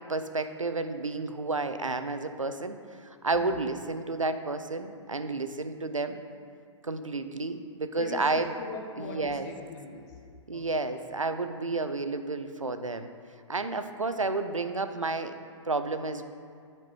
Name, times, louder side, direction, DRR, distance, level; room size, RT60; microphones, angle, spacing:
voice 1, 0.1-6.2 6.8-8.5 9.0-9.5 10.5-13.1 13.5-15.4 15.7-16.2, right 3 dB, 90° right, 9 dB, 0.4 m, -31 dB
voice 2, 8.0-10.2 10.5-10.6, left 4 dB, 30° left, 2 dB, 0.6 m, -41 dB
5.9 x 4.4 x 5.5 m, 2.3 s
figure-of-eight pair, 115°, 16 cm